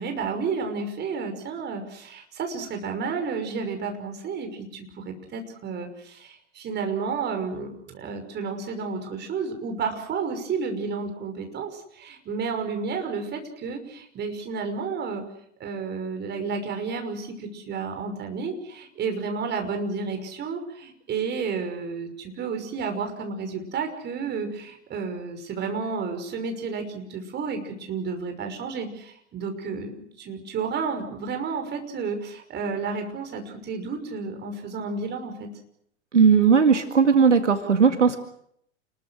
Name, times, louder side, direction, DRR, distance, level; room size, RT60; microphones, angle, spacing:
voice 1, 0.0-15.3 15.6-35.5, right 5 dB, 30° right, 6 dB, 5.9 m, -31 dB
voice 2, 36.1-38.2, right 6 dB, 85° right, 7 dB, 2.1 m, -17 dB
29.5 x 21.5 x 6.4 m, 0.70 s
figure-of-eight pair, 95°, 35 cm